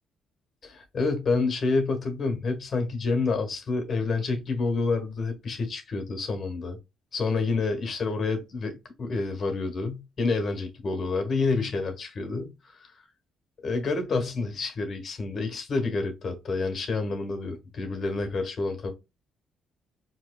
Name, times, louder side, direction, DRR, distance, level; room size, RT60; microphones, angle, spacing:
voice 1, 0.6-6.8 7.1-12.9 13.6-18.9, left 3 dB, 50° left, 1.3 m, -28 dB
4.3 x 2.9 x 2.2 m
cardioid pair, 90°, 0 cm